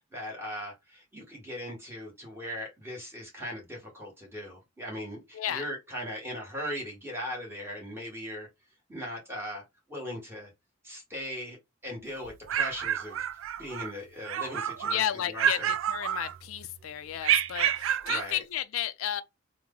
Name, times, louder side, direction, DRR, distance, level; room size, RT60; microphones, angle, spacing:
voice 1, 0.1-8.5 8.9-9.6 9.9-10.5 10.8-11.6 11.8-13.3 13.6-15.7 18.0-18.4, equal, 10° right, 1.3 m, -39 dB
voice 2, 5.3-5.7 14.8-19.2, left 10 dB, 90° left, 0.4 m, -33 dB
sound 1, 12.2-13.9 14.2-15.0 15.4-16.6 17.2-18.3, right 10 dB, 75° right, 0.3 m, -29 dB
3.1 x 2.1 x 3.6 m
head